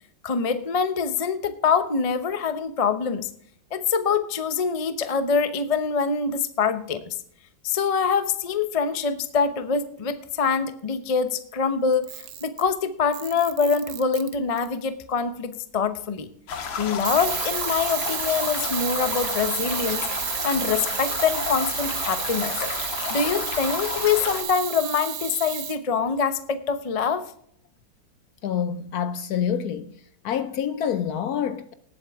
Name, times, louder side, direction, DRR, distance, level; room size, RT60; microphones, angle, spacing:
voice 1, 0.2-3.3 3.7-7.2 7.6-12.0 12.4-16.3 16.8-20.1 20.4-22.6 23.1-27.2, left 6 dB, 45° left, 0.4 m, -24 dB
Camera, 11.9-12.7 13.1-14.7 17.1-25.8, right 11 dB, 80° right, 1.6 m, -31 dB
sound 1, 16.5-24.4, left 6 dB, 85° left, 2.2 m, -32 dB
voice 2, 28.4-30.0 30.2-31.7, left 8 dB, 65° left, 1.0 m, -27 dB
19.0 x 8.0 x 3.6 m
omnidirectional pair, 2.1 m